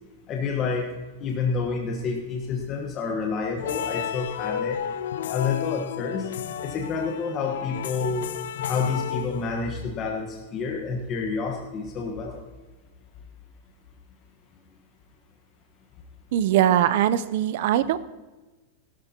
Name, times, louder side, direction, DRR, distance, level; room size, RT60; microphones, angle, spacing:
voice 1, 0.3-0.9 1.2-4.8 5.3-6.3 6.6-8.3 8.7-12.4, left 5 dB, 25° left, 0 dB, 1.3 m, -28 dB
sound 1, 3.6-9.8, left 9 dB, 80° left, 0.5 m, -32 dB
voice 2, 16.3-18.0, right 11 dB, 55° right, 15 dB, 0.6 m, -21 dB
17.5 x 13.0 x 2.9 m, 1.2 s
supercardioid pair, 160°, 0 cm